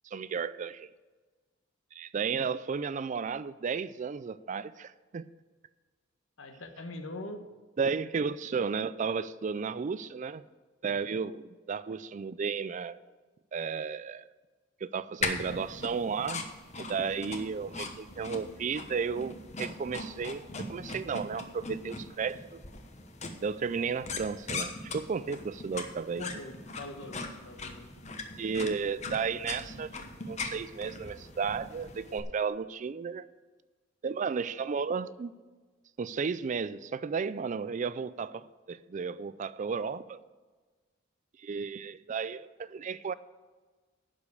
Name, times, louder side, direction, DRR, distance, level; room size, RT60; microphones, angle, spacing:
voice 1, 0.0-0.9 1.9-5.2 7.8-10.4 10.8-13.0 13.5-14.2 14.8-16.5 16.8-22.6 23.4-26.3 28.4-30.0 30.3-33.3 34.0-35.3 36.0-40.2 41.4-43.1, right 5 dB, 40° right, 0.3 m, -33 dB
voice 2, 6.4-7.5 26.2-27.9, left 2 dB, 75° left, 1.1 m, -42 dB
sound 1, 15.2-32.2, left 3 dB, 35° left, 1.1 m, -40 dB
11.5 x 5.1 x 8.3 m
head